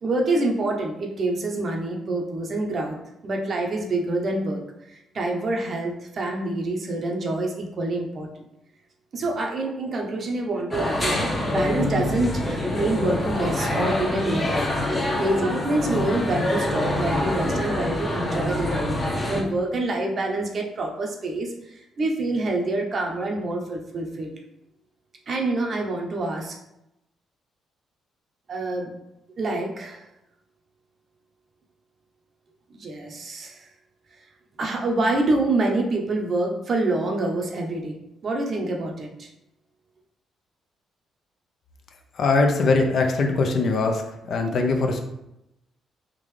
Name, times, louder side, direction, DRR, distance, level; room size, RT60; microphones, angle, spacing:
voice 1, 0.0-3.0 3.2-4.6 4.9-8.4 9.1-14.6 15.1-18.9 19.2-24.3 25.3-26.6 28.5-28.9 29.4-30.0 32.7-33.7 34.6-38.0 38.2-39.3, right 2 dB, 50° right, 1 dB, 0.7 m, -26 dB
High School Germany Indoor Ambience Before Class, 10.7-19.4, left 1 dB, 25° left, 0.7 m, -25 dB
voice 2, 42.2-44.0 44.3-45.0, left 3 dB, 60° left, 4 dB, 0.5 m, -21 dB
3.6 x 2.4 x 3.2 m, 0.86 s
cardioid pair, 90°, 0 cm